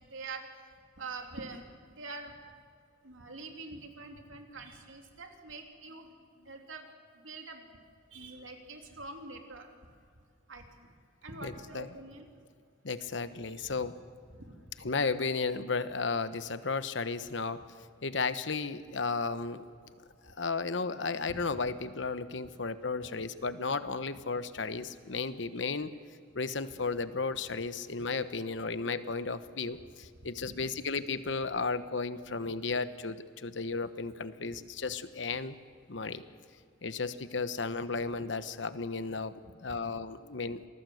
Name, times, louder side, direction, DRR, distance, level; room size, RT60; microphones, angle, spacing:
voice 1, 0.1-0.5 1.0-1.7 2.0-2.4 3.0-6.1 6.5-6.9 7.2-7.8 8.1-9.7 10.5-10.9 11.2-12.3 13.4-13.8 14.4-14.9 21.3-21.6 30.4-30.6 39.4-39.8, right 3 dB, 85° right, 3 dB, 3.0 m, -45 dB
voice 2, 11.4-11.9 12.8-13.9 14.8-17.6 18.0-19.6 20.2-25.9 26.3-35.5 35.9-36.2 36.8-40.7, left 4 dB, 70° left, 12 dB, 1.1 m, -34 dB
27.0 x 19.0 x 7.9 m, 2.2 s
head